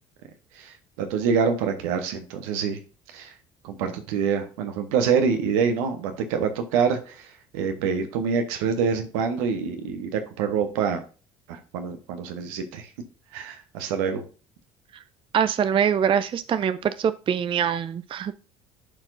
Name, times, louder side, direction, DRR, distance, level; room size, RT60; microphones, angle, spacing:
voice 1, 0.6-2.8 3.1-3.3 3.6-7.3 7.5-11.0 11.5-12.9 13.3-14.2, right 6 dB, 70° right, 7 dB, 1.1 m, -26 dB
voice 2, 15.3-18.3, right 8 dB, 30° right, 14 dB, 0.4 m, -23 dB
11.5 x 4.5 x 2.6 m, 0.37 s
hypercardioid pair, 60°, 18 cm